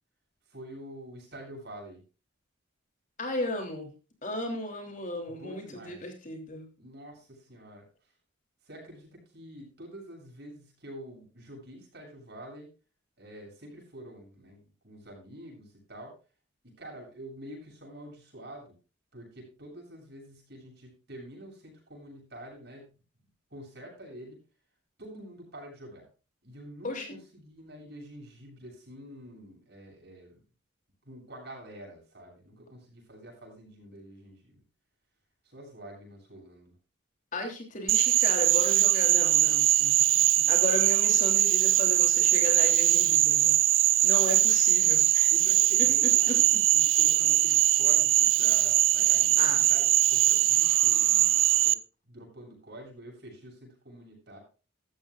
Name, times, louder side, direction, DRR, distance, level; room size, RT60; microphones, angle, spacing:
voice 1, 0.4-2.0 5.3-6.0 6.8-8.1 8.6-12.7 13.2-16.1 16.6-18.8 19.1-22.9 23.5-24.4 25.0-26.1 26.4-30.4 31.0-34.6 35.4-36.7 40.0-40.5 44.0-44.6 45.3-46.5 46.7-51.8 52.0-54.4, equal, 55° right, 0 dB, 7.9 m, -47 dB
voice 2, 3.2-3.9 4.2-6.7 26.8-27.1 37.3-39.9 40.5-43.6 44.0-45.3 46.3-46.6 49.4-49.6, left 1 dB, 40° left, 3 dB, 3.3 m, -35 dB
Frog, 37.9-51.7, right 14 dB, 75° right, 0.6 m, -22 dB
14.5 x 14.0 x 2.5 m, 0.34 s
head